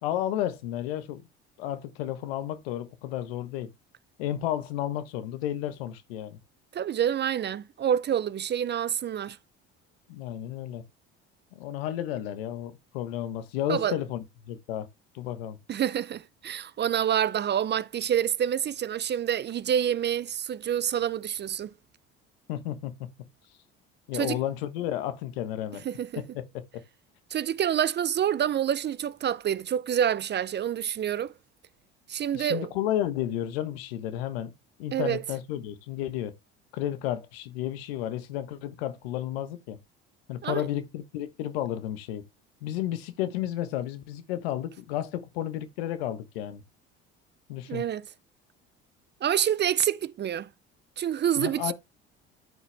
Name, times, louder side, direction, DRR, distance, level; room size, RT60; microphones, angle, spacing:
voice 1, 0.0-1.2 1.6-3.7 4.2-6.4 10.1-10.8 11.5-14.9 15.1-15.6 22.5-23.1 24.1-25.8 26.2-26.6 32.3-34.5 34.8-36.3 36.7-39.8 40.3-42.2 42.6-46.6 47.5-47.8 51.4-51.7, left 12 dB, 90° left, 1.2 m, -32 dB
voice 2, 6.7-9.4 13.7-14.0 15.7-21.7 24.1-24.4 25.8-26.2 27.3-31.3 32.1-32.7 34.9-35.2 40.4-40.7 47.7-48.1 49.2-50.5 51.0-51.7, right 9 dB, 35° right, 0.5 m, -27 dB
12.0 x 4.9 x 3.3 m
supercardioid pair, 75°, 29 cm